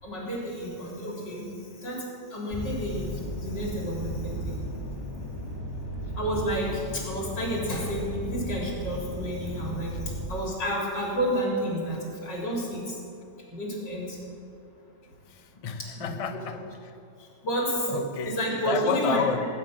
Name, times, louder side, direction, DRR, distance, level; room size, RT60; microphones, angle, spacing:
voice 1, 0.0-4.6 6.2-13.0 13.5-14.2 15.9-16.1 17.2-17.9 18.3-19.2, equal, 80° left, -3 dB, 4.6 m, -31 dB
sound 1, 2.5-10.3, equal, 15° right, 2.1 m, -35 dB
voice 2, 15.3-16.6 17.9-18.4 18.6-19.5, left 5 dB, 35° left, 6 dB, 0.5 m, -29 dB
18.5 x 9.5 x 6.3 m, 2.6 s
omnidirectional pair, 1.9 m